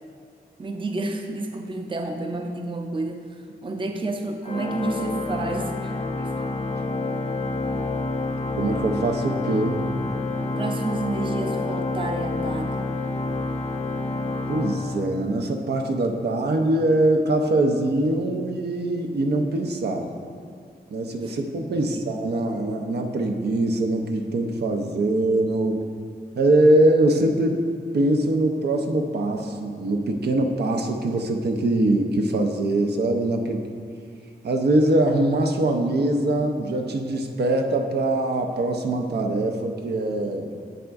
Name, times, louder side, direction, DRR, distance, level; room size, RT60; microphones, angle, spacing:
voice 1, 0.6-3.3 3.6-6.5 10.6-12.9 21.2-21.3 21.7-22.1, right 2 dB, 30° right, 3 dB, 0.5 m, -30 dB
Organ, 4.4-15.6, left 2 dB, 40° left, 0.5 m, -28 dB
voice 2, 8.6-9.8 14.5-20.1 20.9-25.8 26.3-27.6 27.9-33.6 34.4-40.5, right 1 dB, 80° right, 3 dB, 0.6 m, -22 dB
7.8 x 4.2 x 3.5 m, 2.1 s
wide cardioid pair, 95°, 17 cm